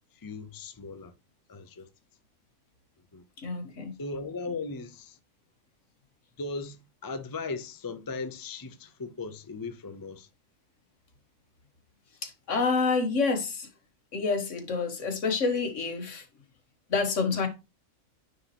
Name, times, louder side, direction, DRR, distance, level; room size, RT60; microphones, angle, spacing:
voice 1, 0.1-1.1 1.5-1.9 3.1-3.2 4.0-5.2 6.4-10.3, left 3 dB, 30° left, 0.4 m, -37 dB
voice 2, 3.4-3.9 4.5-4.6 12.2-13.7 14.1-16.3 16.9-17.5, left 4 dB, 65° left, 1.5 m, -28 dB
9.4 x 4.1 x 3.0 m
omnidirectional pair, 1.4 m